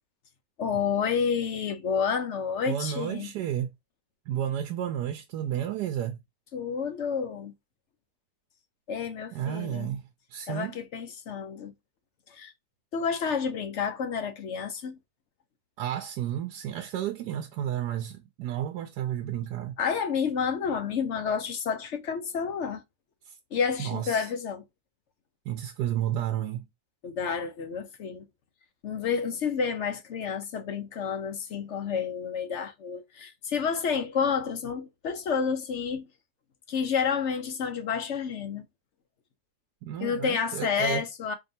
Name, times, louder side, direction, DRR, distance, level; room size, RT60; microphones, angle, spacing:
voice 1, 0.6-3.3 6.5-7.5 8.9-9.9 10.5-11.7 12.3-12.5 12.9-14.9 19.8-22.8 23.5-24.6 27.0-28.3 28.8-36.1 36.7-38.7 40.0-41.3, left 6 dB, 60° left, 0.8 m, -30 dB
voice 2, 2.7-3.7 4.3-6.2 9.3-10.8 15.8-19.8 23.2-23.4 23.8-24.3 25.5-26.7 39.8-41.0, right 10 dB, 85° right, 1.2 m, -32 dB
4.6 x 2.9 x 2.7 m
omnidirectional pair, 1.8 m